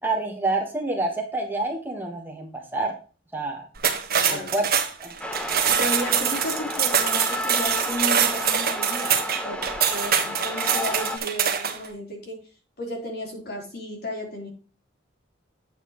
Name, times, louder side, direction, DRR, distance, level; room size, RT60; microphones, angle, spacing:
voice 1, 0.0-3.0 3.3-3.7 4.2-4.7 5.0-5.1 10.2-10.3, right 2 dB, 10° right, 1 dB, 1.4 m, -28 dB
sound 1, 3.8-11.9, right 8 dB, 50° right, 1.4 m, -24 dB
voice 2, 4.2-4.5 5.7-12.4 12.8-14.5, left 1 dB, 55° left, 0 dB, 3.7 m, -33 dB
sound 2, 5.2-11.2, left 1 dB, 5° left, 1.0 m, -32 dB
9.1 x 8.3 x 3.1 m, 0.36 s
head